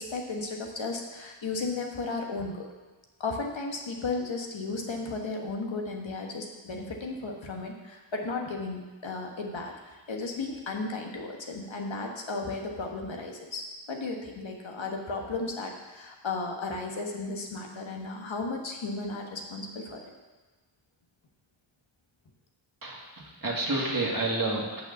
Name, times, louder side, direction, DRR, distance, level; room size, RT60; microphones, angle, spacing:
voice 1, 0.0-2.7 3.2-20.1, left 3 dB, 65° left, 1 dB, 1.4 m, -34 dB
voice 2, 22.8-24.8, right 2 dB, 40° right, -1 dB, 1.9 m, -30 dB
6.6 x 5.6 x 7.1 m, 1.2 s
wide cardioid pair, 60°, 49 cm